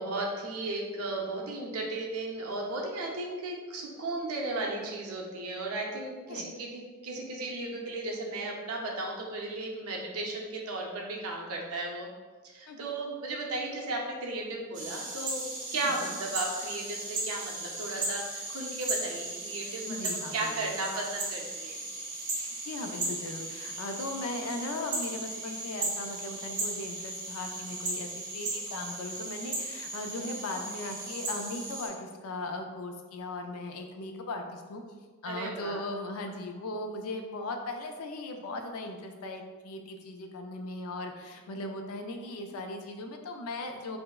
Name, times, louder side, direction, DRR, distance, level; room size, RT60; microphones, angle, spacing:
voice 1, 0.0-12.1 12.5-15.4 15.7-21.8 35.2-35.8, right 2 dB, 80° right, -1 dB, 0.6 m, -35 dB
sound 1, 14.7-31.9, right 2 dB, 35° right, 0.5 m, -36 dB
voice 2, 15.8-16.2 19.9-20.7 22.3-34.8 35.2-44.0, left 2 dB, 75° left, 4 dB, 0.4 m, -38 dB
4.3 x 2.0 x 2.3 m, 1.4 s
head